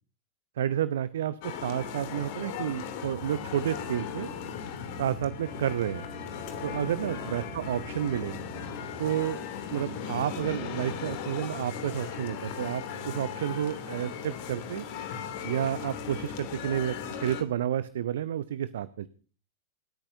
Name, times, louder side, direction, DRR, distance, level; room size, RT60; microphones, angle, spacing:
voice 1, 0.6-4.3 5.0-6.1 6.6-8.4 9.0-9.4 9.7-14.9 15.4-19.1, right 10 dB, 60° right, 16 dB, 0.7 m, -30 dB
sound 1, 1.4-17.4, left 7 dB, 50° left, 2.8 m, -37 dB
sound 2, 3.0-10.1, right 1 dB, 90° right, 5.7 m, -47 dB
28.5 x 13.0 x 2.7 m, 0.38 s
figure-of-eight pair, 90°, 0 cm